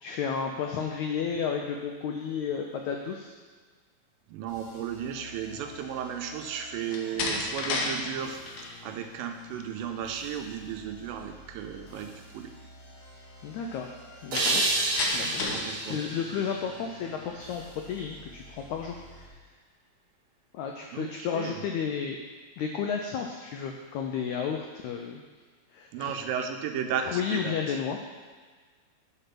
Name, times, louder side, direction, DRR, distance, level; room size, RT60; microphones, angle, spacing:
voice 1, 0.0-3.3 13.4-13.9 14.2-14.6 15.1-15.4 15.9-19.3 20.5-22.2 22.6-25.2 25.7-26.1 27.0-28.0, left 7 dB, 85° left, 2 dB, 1.6 m, -32 dB
voice 2, 4.3-12.5 15.5-16.0 20.9-21.6 25.9-27.8, right 8 dB, 85° right, 6 dB, 2.4 m, -35 dB
sound 1, 4.5-19.3, left 1 dB, 55° left, 2.9 m, -50 dB
Slam, 6.8-7.9 8.3-8.7 14.4-15.7, left 3 dB, 70° left, 2.4 m, -30 dB
sound 2, 14.3-17.5, right 2 dB, 60° right, 1.4 m, -30 dB
10.0 x 4.3 x 5.9 m, 1.5 s
omnidirectional pair, 4.0 m